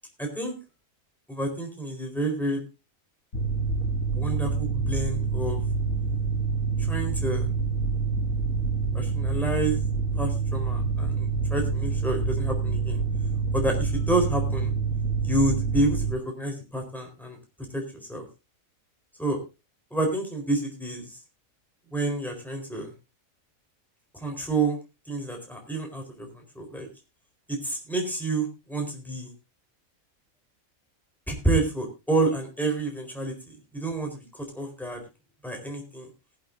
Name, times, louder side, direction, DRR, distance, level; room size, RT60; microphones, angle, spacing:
voice 1, 0.2-0.5 1.3-2.6 4.1-5.6 6.9-7.5 8.9-9.8 10.2-13.0 13.5-14.7 15.2-17.4 17.7-18.2 19.2-19.4 19.9-21.1 21.9-22.9 24.2-24.8 25.1-26.9 27.5-29.3 31.3-35.0 35.4-36.1, right 2 dB, ahead, 1 dB, 4.3 m, -29 dB
Mechanical fan, 3.3-16.1, right 4 dB, 75° left, 2.9 m, -27 dB
19.0 x 11.5 x 2.7 m, 0.27 s
omnidirectional pair, 1.4 m